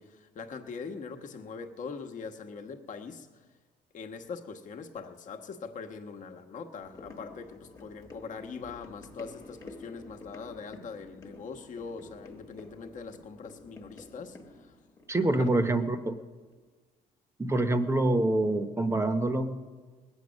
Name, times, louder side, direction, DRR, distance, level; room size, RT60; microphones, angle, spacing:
voice 1, 0.0-3.4 3.9-14.7 15.2-15.5, left 5 dB, 50° left, 4 dB, 1.2 m, -42 dB
sound 1, 6.8-16.2 16.5-16.6, left 2 dB, 20° left, 1.2 m, -50 dB
voice 2, 15.1-16.2 17.4-19.5, right 2 dB, 15° right, 9 dB, 1.0 m, -26 dB
19.5 x 8.3 x 6.3 m, 1.4 s
cardioid pair, 110°, 17 cm